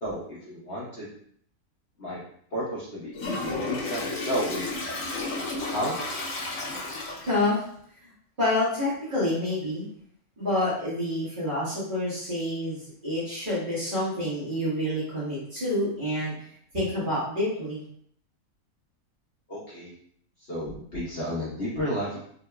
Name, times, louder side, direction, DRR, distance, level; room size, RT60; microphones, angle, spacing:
voice 1, 0.0-1.1 2.0-2.2 2.5-4.6 5.7-5.9 19.5-19.9 20.5-22.2, equal, 45° left, -9 dB, 1.1 m, -32 dB
Toilet flush, 3.1-7.5, left 2 dB, 70° left, 1.0 m, -32 dB
voice 2, 7.3-7.6 8.4-9.8 10.4-16.3 16.7-17.8, left 1 dB, 35° right, -11 dB, 1.7 m, -28 dB
3.7 x 2.7 x 2.2 m, 0.62 s
omnidirectional pair, 1.5 m